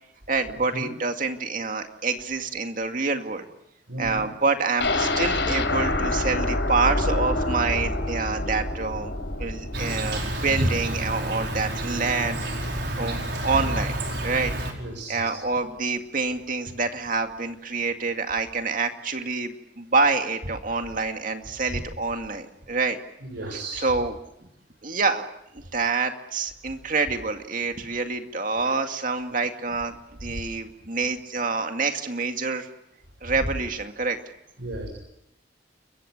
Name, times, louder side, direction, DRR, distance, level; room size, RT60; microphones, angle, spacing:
voice 1, 0.3-3.5 4.0-9.1 9.4-12.4 12.7-14.5 15.1-23.0 23.5-24.1 24.8-25.2 25.5-29.9 30.2-32.7 33.2-34.2, right 4 dB, 50° right, 6 dB, 2.2 m, -27 dB
voice 2, 3.9-4.2 10.6-10.7 14.8-15.3 23.2-23.8 28.6-28.7 34.6-34.9, right 1 dB, 90° right, 2 dB, 7.8 m, -31 dB
sound 1, 4.8-12.7 13.0-13.1 13.5-13.6, left 2 dB, 80° left, 4.4 m, -27 dB
Insect, 9.7-14.7, right 1 dB, 70° right, 5.2 m, -30 dB
29.5 x 22.5 x 6.6 m, 0.83 s
head